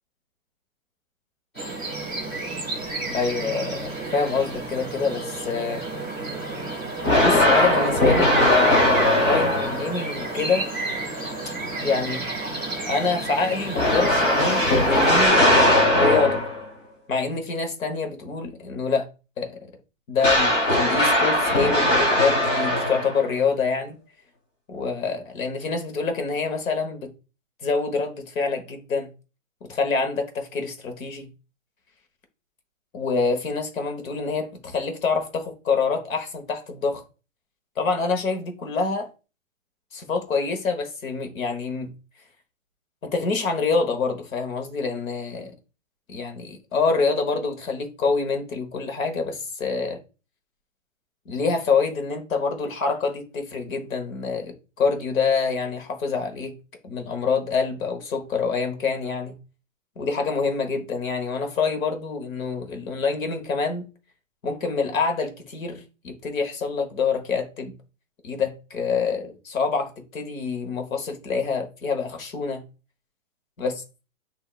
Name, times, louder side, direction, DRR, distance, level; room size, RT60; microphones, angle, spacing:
sound 1, 1.5-15.3, right 2 dB, 10° left, 0.6 m, -32 dB
voice 1, 3.1-5.9 7.2-10.7 11.8-12.2 12.9-15.4 15.9-16.4 17.1-19.1 19.4-19.6 20.1-24.0 24.7-27.1 27.6-29.1 29.6-31.3 32.9-37.0 37.8-39.1 39.9-41.9 43.0-45.5 46.1-50.0 51.3-56.6 56.8-59.3 60.0-63.9 64.4-67.7 68.2-72.6 73.6-73.7, left 4 dB, 90° left, 1.3 m, -26 dB
sound 2, 7.0-10.0 13.7-16.6 20.2-23.3, left 1 dB, 25° left, 0.9 m, -19 dB
7.5 x 2.8 x 2.4 m
hypercardioid pair, 170°, 39 cm